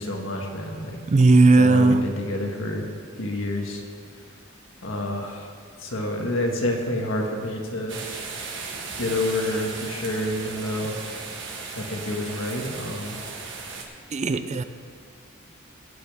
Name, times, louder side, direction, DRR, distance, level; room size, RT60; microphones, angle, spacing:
voice 1, 0.0-1.0 1.6-2.9 3.2-3.8 4.8-5.5 5.8-8.0 9.0-11.0 11.7-13.1, left 1 dB, 70° left, 1 dB, 1.6 m, -28 dB
voice 2, 1.1-2.1 14.1-14.6, right 3 dB, 35° right, 11 dB, 0.4 m, -17 dB
sound 1, 7.9-13.8, right 4 dB, 60° right, 1.4 m, -36 dB
18.0 x 8.4 x 3.5 m, 2.2 s
head